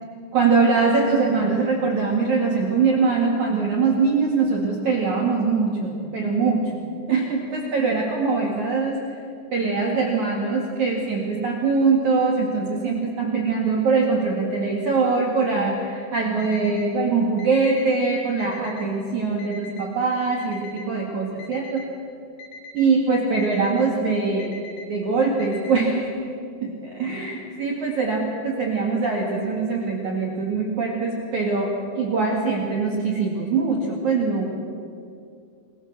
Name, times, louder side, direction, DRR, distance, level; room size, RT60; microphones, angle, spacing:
voice 1, 0.3-9.2 9.5-21.9 22.7-24.5 24.9-26.1 26.6-34.5, right 4 dB, 50° right, 0 dB, 3.0 m, -22 dB
Alarm, 16.4-16.9 17.4-17.9 18.4-18.9 19.4-19.9 20.4-20.9 21.4-21.9 22.4-22.9 23.4-23.9 24.4-24.9 25.4-25.9, left 3 dB, 60° left, 3.9 m, -42 dB
28.5 x 21.5 x 7.5 m, 2.4 s
omnidirectional pair, 5.3 m